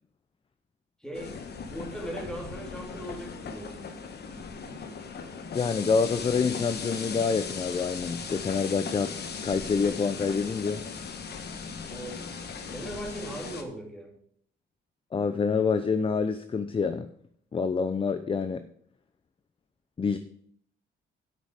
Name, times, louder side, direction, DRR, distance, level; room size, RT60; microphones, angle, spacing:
voice 1, 1.0-3.9 11.9-12.3 12.7-14.2, right 1 dB, 5° left, 1 dB, 2.7 m, -39 dB
sound 1, 1.1-13.6, left 5 dB, 55° left, 1.4 m, -38 dB
voice 2, 5.5-10.8 15.1-17.1 17.5-18.6 20.0-20.2, left 5 dB, 25° left, 10 dB, 0.6 m, -27 dB
8.2 x 6.3 x 6.6 m, 0.64 s
cardioid pair, 90°, 20 cm